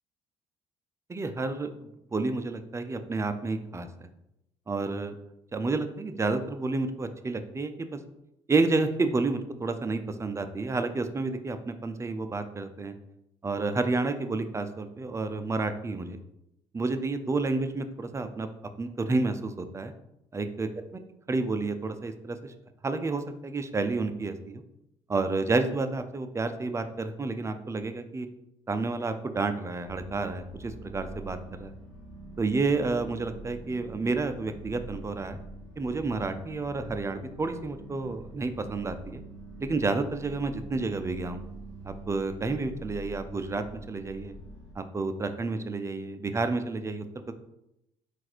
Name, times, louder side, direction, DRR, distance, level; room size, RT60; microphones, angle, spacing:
voice 1, 1.1-4.1 4.7-5.1 5.5-8.0 8.5-13.0 13.4-16.2 16.7-18.5 18.8-19.9 20.3-20.7 21.3-22.5 22.8-24.6 25.1-28.3 28.7-31.7 32.4-35.4 35.8-39.2 39.6-41.4 41.8-44.3 44.8-47.3, right 3 dB, 20° right, 9 dB, 0.5 m, -30 dB
sound 1, 29.8-44.7, right 2 dB, 80° left, 1.1 m, -45 dB
3.9 x 2.5 x 4.3 m, 0.83 s
hypercardioid pair, 65°, 13 cm